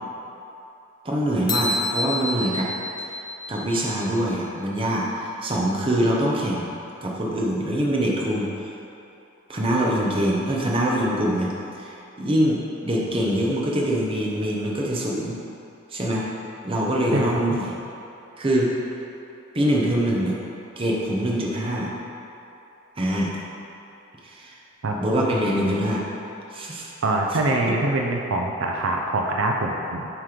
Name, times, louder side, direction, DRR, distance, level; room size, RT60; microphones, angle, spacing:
voice 1, 1.0-2.7 3.5-6.7 7.0-8.7 9.5-11.5 11.8-15.4 15.9-16.3 16.6-17.7 18.4-18.7 19.5-20.4 20.8-21.9 23.0-23.3 24.2-24.6 25.0-26.0 26.5-26.9, right 1 dB, 25° right, -3 dB, 0.7 m, -24 dB
sound 1, 1.5-4.1, left 2 dB, 20° left, 0.3 m, -29 dB
voice 2, 17.1-17.4 24.8-25.0 27.0-30.1, right 2 dB, 70° right, 0 dB, 0.5 m, -24 dB
7.4 x 3.0 x 5.0 m, 2.9 s
head